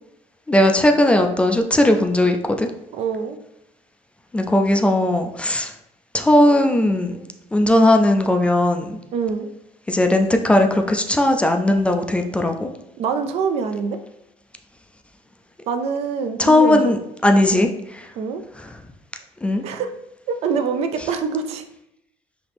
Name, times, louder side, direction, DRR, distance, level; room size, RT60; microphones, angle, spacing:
voice 1, 0.5-2.7 4.3-5.7 6.1-7.3 7.5-9.0 9.9-12.7 16.4-17.0 17.2-18.1 18.6-18.8 19.4-19.6, left 1 dB, 10° left, 4 dB, 0.3 m, -18 dB
voice 2, 2.9-3.4 9.1-9.5 13.0-14.0 15.7-16.9 17.5-17.7 18.2-18.4 19.6-19.9 20.3-21.6, right 6 dB, 65° right, 8 dB, 0.4 m, -25 dB
4.1 x 2.8 x 3.4 m, 0.82 s
cardioid pair, 135°, 12 cm